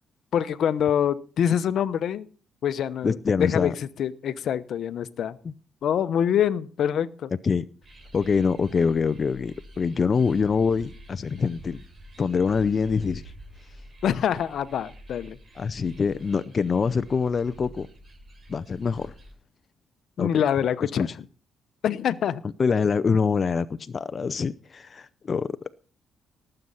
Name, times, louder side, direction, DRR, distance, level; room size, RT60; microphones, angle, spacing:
voice 1, 0.3-2.3 2.6-3.7 4.0-5.4 5.8-7.3 14.0-15.4 20.2-21.1 21.8-22.4, left 9 dB, 65° left, 0.9 m, -25 dB
voice 2, 3.0-3.7 5.4-5.5 7.4-7.7 8.1-11.8 12.2-13.3 15.6-17.9 18.5-19.1 20.2-20.4 20.8-21.1 22.6-25.7, left 5 dB, 40° left, 0.6 m, -25 dB
sound 1, 7.8-19.3, right 1 dB, 40° right, 5.2 m, -47 dB
18.5 x 7.9 x 5.6 m
cardioid pair, 90°, 0 cm